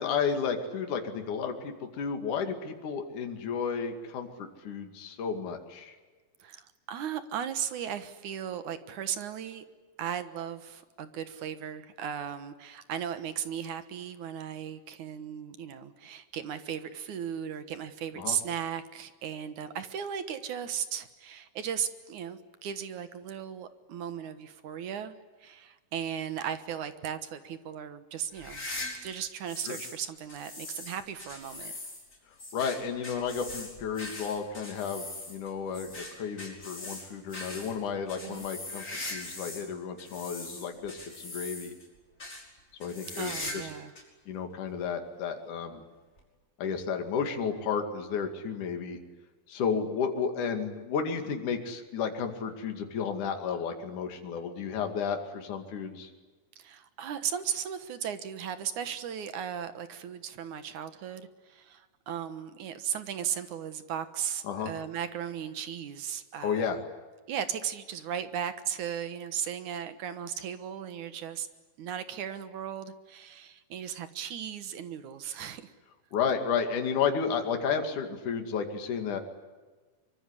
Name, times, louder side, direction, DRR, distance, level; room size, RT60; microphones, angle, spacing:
voice 1, 0.0-6.0 18.2-18.4 29.7-29.8 32.5-38.8 39.1-41.8 42.8-43.7 44.3-45.8 46.6-49.0 49.5-56.1 64.4-64.7 66.4-66.8 76.1-79.2, left 6 dB, 60° left, 5 dB, 3.7 m, -32 dB
voice 2, 6.4-9.7 10.0-25.2 25.4-28.7 29.0-31.7 38.2-38.5 43.2-43.9 56.6-66.8 67.3-71.5 71.8-75.7, right 9 dB, 65° right, 11 dB, 2.5 m, -36 dB
sound 1, 28.3-30.0 30.3-39.7 40.0-41.9 42.2-42.4 42.8-43.7 44.0-44.1 44.8-44.9 46.2-46.3, left 2 dB, 20° left, 5.8 m, -41 dB
24.5 x 23.5 x 9.9 m, 1.3 s
omnidirectional pair, 4.3 m